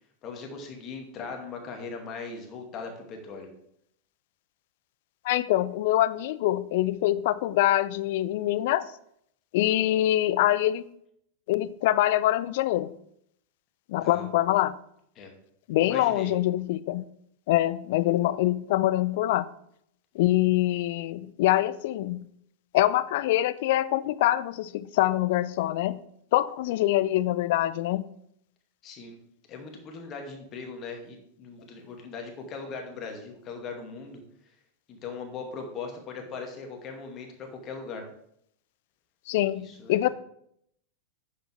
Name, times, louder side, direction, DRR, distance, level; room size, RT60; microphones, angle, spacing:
voice 1, 0.2-3.5 14.0-14.2 15.2-15.3 15.8-16.3 28.8-29.2 29.5-34.5 34.9-38.1 39.6-40.1, left 4 dB, 30° left, 3 dB, 2.2 m, -39 dB
voice 2, 5.2-8.9 9.5-10.8 11.5-12.9 13.9-14.8 15.7-17.0 17.5-19.5 20.1-22.2 22.7-26.0 26.3-28.0 39.3-40.1, left 14 dB, 50° left, 17 dB, 0.4 m, -24 dB
10.0 x 7.4 x 3.3 m, 0.71 s
figure-of-eight pair, 90°, 0 cm